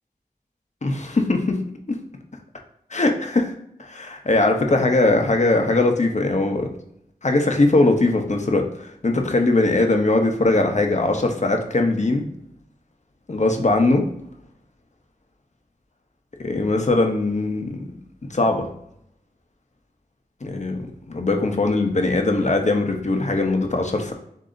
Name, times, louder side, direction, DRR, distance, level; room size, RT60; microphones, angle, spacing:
voice 1, 0.8-1.6 1.9-2.0 2.9-3.5 3.8-6.7 7.2-12.3 13.3-14.1 16.4-17.8 18.3-18.7 20.4-24.1, left 2 dB, 50° left, 3 dB, 0.8 m, -20 dB
7.5 x 2.7 x 2.6 m, 0.73 s
wide cardioid pair, 55°, 16 cm